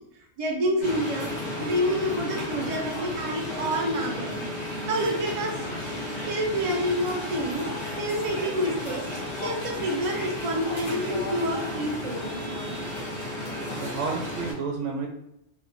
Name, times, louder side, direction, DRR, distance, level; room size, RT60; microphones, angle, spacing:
voice 1, 0.4-1.3 1.6-4.4 4.9-5.6 6.3-7.7 8.0-9.0 9.4-12.8, equal, 50° right, 0 dB, 0.4 m, -28 dB
sound 1, 0.8-14.5, left 1 dB, 70° left, 1.2 m, -33 dB
voice 2, 13.8-15.1, right 4 dB, 75° right, 1 dB, 1.0 m, -31 dB
2.7 x 2.2 x 2.5 m, 0.83 s
omnidirectional pair, 1.3 m